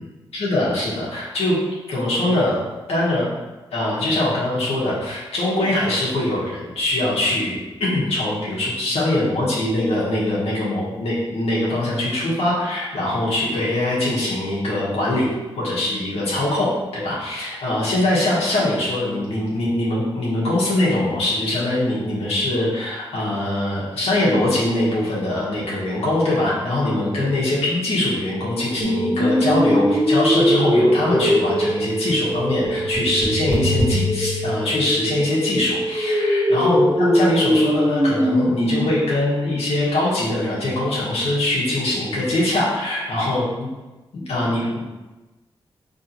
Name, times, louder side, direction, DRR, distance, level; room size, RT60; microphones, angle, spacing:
voice 1, 0.3-1.6 1.9-2.6 2.9-3.3 3.7-15.3 15.6-43.7 44.1-44.9, left 1 dB, 80° left, -7 dB, 1.2 m, -22 dB
sound 1, 28.8-38.8, equal, 15° right, 1.4 m, -21 dB
3.7 x 3.2 x 2.9 m, 1.1 s
supercardioid pair, 50°, 10 cm